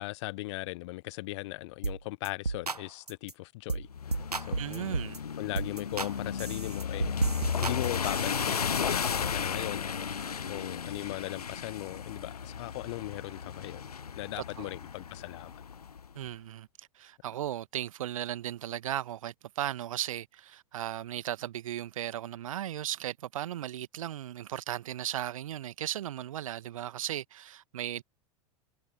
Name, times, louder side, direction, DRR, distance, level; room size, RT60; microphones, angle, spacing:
voice 1, 0.0-3.9 4.4-5.1 5.4-9.9 10.5-15.5, left 21 dB, 50° left, 1.2 m, -38 dB
sound 1, 1.8-2.0 2.2-2.8 3.1-3.3 3.7-3.9 4.1-5.2 5.6-6.1 6.4-8.4, right 3 dB, 90° right, 0.9 m, -33 dB
sound 2, 3.9-16.1, left 7 dB, 80° left, 0.6 m, -35 dB
voice 2, 4.6-5.2 14.4-14.7 16.1-28.0, right 12 dB, 60° right, 1.4 m, -36 dB
figure-of-eight pair, 90°, 19 cm